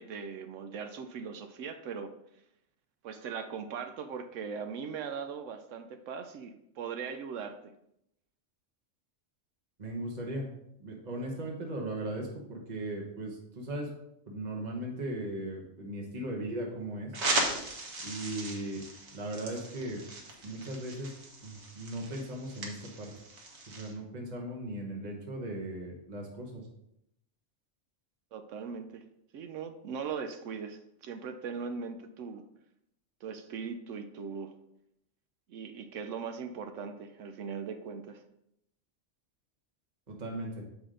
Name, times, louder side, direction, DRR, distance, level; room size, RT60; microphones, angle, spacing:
voice 1, 0.0-2.1 3.0-7.7 28.3-29.0 29.3-32.4 33.2-34.5 35.5-38.2, right 6 dB, 80° right, 8 dB, 0.9 m, -39 dB
voice 2, 9.8-10.5 10.8-13.9 14.3-17.1 18.0-18.8 19.1-20.0 20.4-21.1 21.4-23.1 23.7-26.6 40.1-40.6, right 1 dB, 35° right, -1 dB, 1.1 m, -37 dB
sound 1, 17.1-23.9, right 2 dB, 60° right, 1.5 m, -37 dB
7.2 x 5.0 x 3.7 m, 0.79 s
omnidirectional pair, 1.3 m